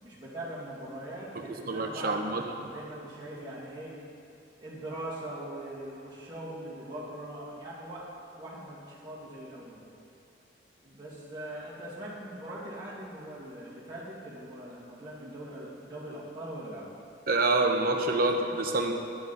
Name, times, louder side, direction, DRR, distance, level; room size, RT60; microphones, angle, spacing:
voice 1, 0.0-2.2 2.6-4.0 4.6-9.8 10.8-16.9, right 1 dB, 25° right, -8 dB, 2.2 m, -41 dB
voice 2, 1.7-2.7 17.3-18.9, right 2 dB, 50° right, 3 dB, 0.8 m, -27 dB
9.9 x 7.1 x 5.3 m, 2.5 s
head